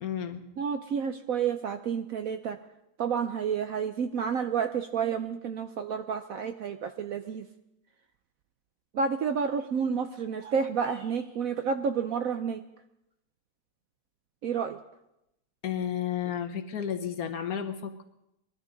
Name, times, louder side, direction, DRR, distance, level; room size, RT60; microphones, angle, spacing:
voice 1, 0.0-0.4 15.6-18.0, left 9 dB, 60° left, 7 dB, 1.2 m, -32 dB
voice 2, 0.6-2.6 3.0-7.5 8.9-12.6 14.4-14.8, right 6 dB, 65° right, 8 dB, 0.9 m, -30 dB
sound 1, 10.2-11.4, right 3 dB, 40° right, 6.8 m, -53 dB
22.0 x 12.5 x 3.9 m, 0.87 s
omnidirectional pair, 2.0 m